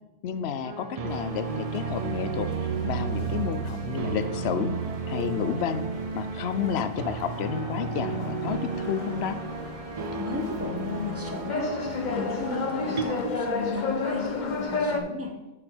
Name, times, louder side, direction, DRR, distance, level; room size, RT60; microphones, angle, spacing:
voice 1, 0.2-4.8 5.1-5.9 6.2-9.4, left 8 dB, 70° left, 11 dB, 0.8 m, -31 dB
sound 1, 0.6-13.0, right 4 dB, 45° right, 0.5 m, -34 dB
sound 2, 1.1-15.0, left 3 dB, 45° left, 0.9 m, -34 dB
sound 3, 1.5-8.7 8.9-9.4 9.7-9.8, right 7 dB, 80° right, 1.0 m, -36 dB
voice 2, 10.2-11.7 12.1-15.3, left 2 dB, 15° right, 1 dB, 1.1 m, -34 dB
8.6 x 4.8 x 5.1 m, 1.1 s
omnidirectional pair, 1.1 m